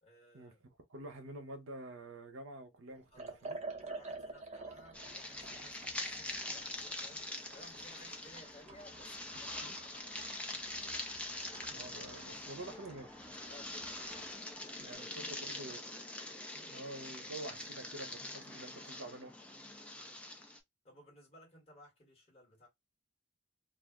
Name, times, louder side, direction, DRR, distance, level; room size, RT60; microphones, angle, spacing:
voice 1, 0.0-0.6 3.1-10.6 13.4-14.0 14.9-15.6 19.7-20.2 20.8-22.7, left 1 dB, 30° left, 1.3 m, -60 dB
voice 2, 0.9-3.6 9.6-9.8 11.7-13.1 14.8-15.8 16.5-19.5, right 1 dB, 65° right, 0.8 m, -48 dB
Liquid, 3.1-14.4, right 3 dB, 35° right, 0.6 m, -50 dB
sound 1, 4.9-20.6, left 2 dB, 5° left, 0.4 m, -44 dB
2.4 x 2.0 x 3.5 m
head